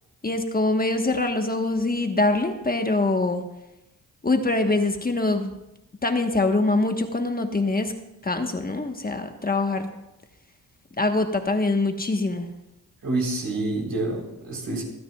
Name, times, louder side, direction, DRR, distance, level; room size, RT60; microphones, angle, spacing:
voice 1, 0.2-3.5 4.2-5.5 6.0-8.0 8.2-9.9 11.0-12.5, left 2 dB, 25° left, 5 dB, 1.2 m, -24 dB
voice 2, 13.0-14.8, right 2 dB, 70° right, -1 dB, 3.8 m, -27 dB
27.0 x 9.4 x 2.4 m, 0.92 s
cardioid pair, 85°, 36 cm